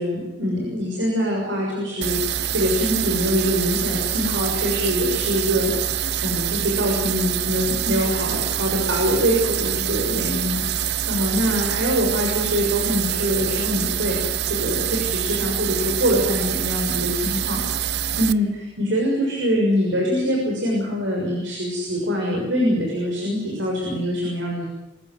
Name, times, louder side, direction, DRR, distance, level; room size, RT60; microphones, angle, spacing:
voice 1, 0.0-10.6 11.1-14.2 14.5-17.6 18.2-24.7, equal, 85° right, -1 dB, 6.7 m, -24 dB
sound 1, 2.0-18.3, right 10 dB, 60° right, 0.7 m, -25 dB
25.5 x 14.5 x 9.6 m, 1.0 s
head